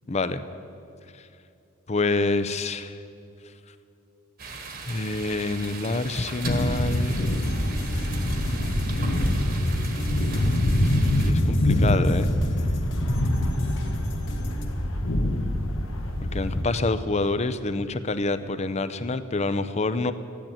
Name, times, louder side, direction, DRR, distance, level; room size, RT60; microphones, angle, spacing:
voice 1, 0.1-0.4 1.2-1.3 1.9-3.0 4.8-7.1 10.8-12.3 16.3-20.1, left 2 dB, 35° left, 12 dB, 0.6 m, -27 dB
sound 1, 4.4-11.3, right 4 dB, 45° right, 1.6 m, -39 dB
sound 2, 6.4-16.6, left 1 dB, 80° left, 1.4 m, -25 dB
sound 3, 6.6-14.7, equal, 60° left, 2.1 m, -35 dB
13.5 x 10.0 x 8.9 m, 2.7 s
head